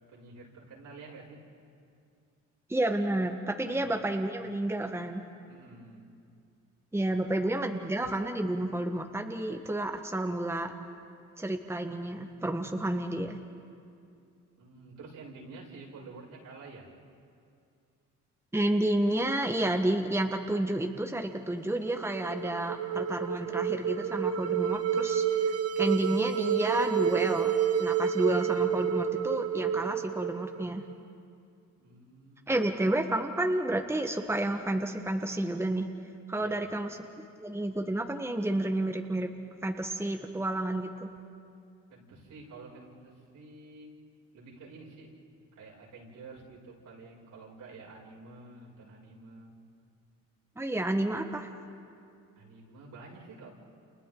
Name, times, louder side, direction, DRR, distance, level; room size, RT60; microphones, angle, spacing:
voice 1, 0.1-1.4 3.6-4.1 5.5-6.1 7.0-7.3 14.6-16.9 31.8-32.7 36.3-36.7 41.9-43.9 44.3-45.1 45.5-49.6 52.4-53.5, right 3 dB, 75° right, -5 dB, 6.4 m, -49 dB
voice 2, 2.7-5.2 6.9-10.7 11.4-13.4 18.5-25.2 25.8-30.8 32.5-35.9 36.3-37.0 37.4-39.3 39.6-41.1 50.6-51.5, right 1 dB, 10° right, 4 dB, 1.4 m, -30 dB
sound 1, 21.7-30.9, right 8 dB, 50° right, 1.1 m, -29 dB
30.0 x 29.0 x 3.9 m, 2.4 s
cardioid pair, 75°, 31 cm